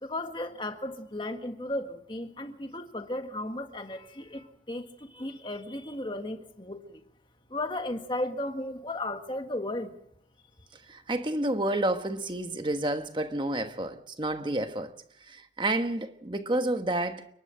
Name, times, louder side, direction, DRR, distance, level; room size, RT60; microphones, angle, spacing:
voice 1, 0.0-7.0 7.5-9.9, left 1 dB, 25° left, 1.7 m, -35 dB
voice 2, 10.9-14.9 15.3-17.3, right 1 dB, 25° right, 1.2 m, -30 dB
30.0 x 11.5 x 7.7 m
head